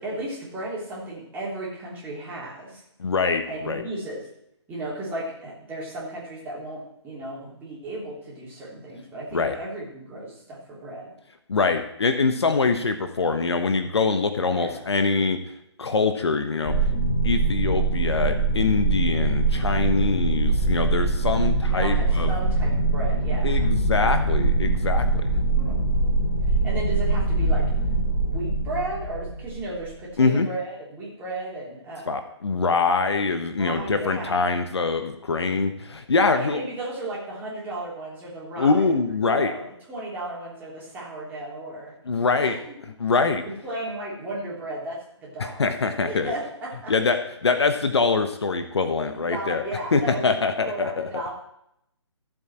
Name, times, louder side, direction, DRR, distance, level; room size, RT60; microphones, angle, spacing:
voice 1, 0.0-2.8 3.5-4.3 4.7-11.1 14.5-14.9 21.7-23.7 25.5-26.0 26.4-27.6 28.1-32.2 33.6-34.4 36.3-39.0 39.3-41.9 42.4-42.7 43.4-45.7 46.0-46.9 49.1-51.3, right 2 dB, 10° right, -6 dB, 3.4 m, -35 dB
voice 2, 3.0-3.8 9.3-9.6 11.5-15.4 15.8-16.7 17.2-22.3 23.4-25.2 30.2-30.5 32.1-36.6 38.6-39.5 42.1-42.6 43.0-43.4 45.4-46.3 46.9-49.6 49.9-51.1, left 4 dB, 65° left, 8 dB, 1.2 m, -24 dB
sound 1, 16.6-29.9, right 2 dB, 10° left, 5.3 m, -23 dB
15.0 x 7.7 x 4.5 m, 0.77 s
figure-of-eight pair, 145°, 15 cm